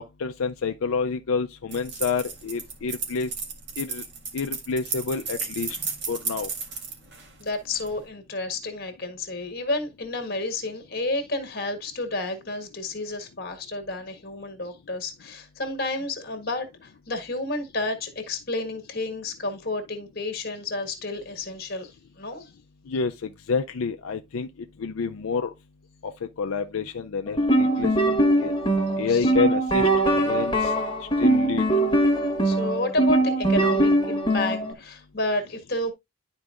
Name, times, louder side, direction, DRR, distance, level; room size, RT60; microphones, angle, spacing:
voice 1, 0.0-3.3 3.8-4.0 4.3-5.8 6.1-6.5 22.9-24.5 24.8-25.5 26.0-26.1 26.4-28.1 28.4-28.5 29.0-30.7 31.2-31.6, left 5 dB, 90° left, 0.5 m, -28 dB
sound 1, 1.7-8.0, right 5 dB, 55° right, 1.9 m, -34 dB
voice 2, 7.4-22.5 29.1-29.3 32.4-35.9, left 2 dB, 50° left, 1.6 m, -31 dB
sound 2, 27.3-34.7, right 1 dB, 25° left, 1.5 m, -22 dB
11.5 x 4.6 x 2.5 m
head